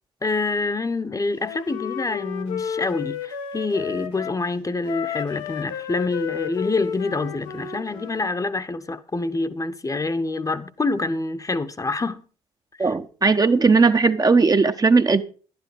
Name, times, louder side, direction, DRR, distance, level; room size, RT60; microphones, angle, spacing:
voice 1, 0.2-12.2 12.8-12.9, left 3 dB, 25° left, 1.0 m, -26 dB
Wind instrument woodwind instrument, 1.4-4.4 4.8-8.3, left 8 dB, 80° left, 1.2 m, -32 dB
voice 2, 12.8-15.2, right 4 dB, 25° right, 1.0 m, -17 dB
11.5 x 10.5 x 5.1 m
hypercardioid pair, 50°, 14 cm